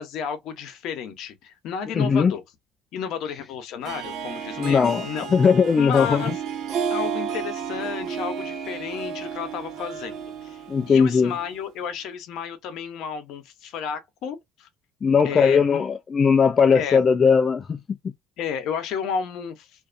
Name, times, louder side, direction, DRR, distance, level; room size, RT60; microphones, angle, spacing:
voice 1, 0.0-2.4 2.9-5.4 5.8-6.3 6.9-14.7 15.2-15.8 16.7-17.0 18.4-19.7, left 7 dB, 70° left, 0.8 m, -32 dB
voice 2, 1.9-2.3 4.6-5.1 5.3-6.2 10.7-11.3 15.0-17.8, left 6 dB, 35° left, 0.3 m, -18 dB
Harp, 3.8-11.5, right 7 dB, 60° right, 1.0 m, -32 dB
2.5 x 2.3 x 2.5 m
cardioid pair, 100°, 0 cm